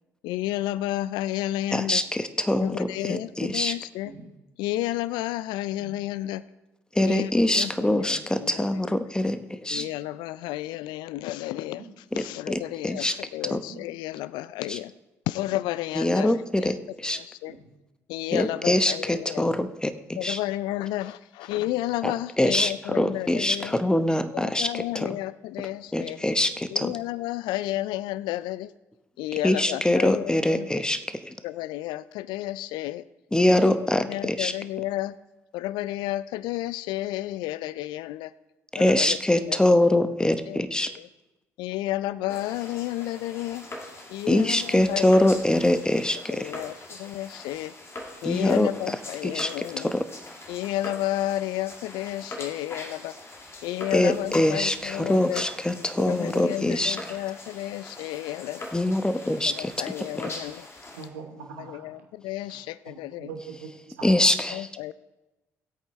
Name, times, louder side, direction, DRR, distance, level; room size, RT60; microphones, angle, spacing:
voice 1, 0.2-2.0 2.6-4.1 4.6-6.4 7.0-9.0 9.7-14.9 15.3-16.7 17.1-17.6 18.1-19.4 20.2-23.8 24.3-26.2 26.7-28.7 29.2-30.7 31.4-33.0 33.5-35.1 35.5-38.3 38.8-39.2 39.4-39.6 40.5-40.6 41.0-41.1 41.6-43.7 44.1-45.4 46.3-47.7 48.2-49.9 50.5-53.2 53.6-55.4 56.0-58.6 59.5-60.7 61.6-63.3 64.5-64.9, left 15 dB, 65° left, 17 dB, 0.4 m, -32 dB
voice 2, 1.7-3.8 6.9-9.9 12.1-13.2 13.5-13.6 14.7-14.8 16.0-17.2 18.3-20.4 22.0-25.2 25.9-26.9 29.4-31.4 33.3-34.5 38.7-40.9 44.3-46.5 48.2-48.7 49.2-49.5 49.8-50.0 53.9-57.0 58.7-59.7 60.2-60.3 64.0-64.7, left 1 dB, 10° left, 11 dB, 0.9 m, -24 dB
sound 1, 4.0-4.4 5.8-6.0 7.9-8.3 9.7-10.0 11.8-12.0 13.7-13.9 15.5-15.7 17.4-17.7 19.4-20.0 21.5-21.8 22.6-22.7, right 3 dB, 60° right, 3.7 m, -47 dB
sound 2, 42.3-61.1, left 2 dB, 35° left, 2.0 m, -42 dB
voice 3, 60.9-62.0 62.9-63.7 64.0-64.1, right 5 dB, 80° right, 4 dB, 1.2 m, -41 dB
18.0 x 8.3 x 3.1 m, 1.0 s
hypercardioid pair, 50°, 8 cm